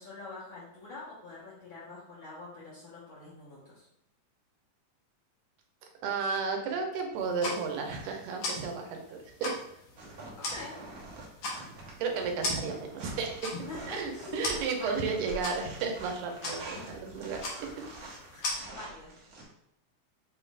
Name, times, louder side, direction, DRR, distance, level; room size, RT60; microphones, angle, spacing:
voice 1, 0.0-3.9 10.4-10.8 13.5-15.1 16.7-16.8 18.3-18.4 18.7-19.1, left 3 dB, 50° left, -9 dB, 1.6 m, -45 dB
voice 2, 6.0-9.5 12.0-13.5 13.9-17.8, right 5 dB, 85° right, 3 dB, 2.2 m, -33 dB
sound 1, 7.2-18.5, left 2 dB, 70° left, 2.0 m, -40 dB
sound 2, 10.0-19.4, right 3 dB, 65° right, 1.2 m, -46 dB
6.1 x 3.2 x 2.4 m, 0.77 s
omnidirectional pair, 3.5 m